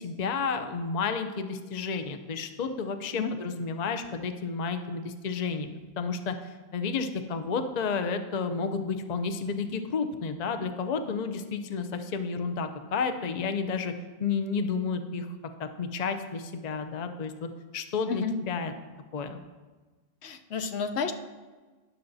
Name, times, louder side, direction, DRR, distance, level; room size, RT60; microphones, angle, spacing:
voice 1, 0.0-13.9 14.2-15.3 15.6-18.7 19.1-19.4, left 5 dB, 45° left, 7 dB, 0.7 m, -31 dB
voice 2, 20.2-21.1, left 5 dB, 75° left, 7 dB, 0.9 m, -31 dB
12.5 x 10.5 x 2.6 m, 1.3 s
omnidirectional pair, 1.1 m